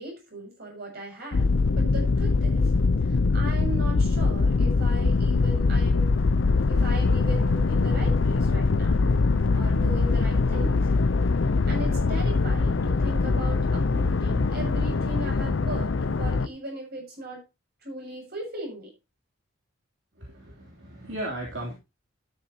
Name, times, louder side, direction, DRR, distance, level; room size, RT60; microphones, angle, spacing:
voice 1, 0.0-1.5 1.8-2.7 3.0-6.3 6.7-9.1 9.5-10.9 11.7-17.4 17.8-18.9, right 2 dB, 55° right, 1 dB, 7.2 m, -38 dB
sound 1, 1.3-16.5, left 3 dB, 70° left, 0.6 m, -23 dB
voice 2, 20.2-21.7, right 1 dB, 70° right, -2 dB, 3.2 m, -36 dB
12.5 x 10.5 x 2.9 m, 0.26 s
head